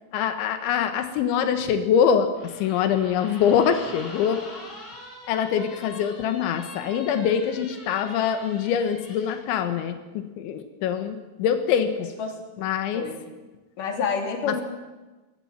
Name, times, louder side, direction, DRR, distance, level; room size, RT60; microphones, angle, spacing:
voice 1, 0.1-4.5 5.3-12.1 12.6-13.1 14.5-14.6, left 8 dB, 90° left, 8 dB, 3.8 m, -24 dB
sound 1, 2.4-9.4, left 2 dB, 70° left, 7.9 m, -43 dB
voice 2, 13.8-14.6, left 5 dB, 50° left, 3 dB, 4.7 m, -28 dB
21.5 x 19.0 x 9.1 m, 1.2 s
omnidirectional pair, 5.2 m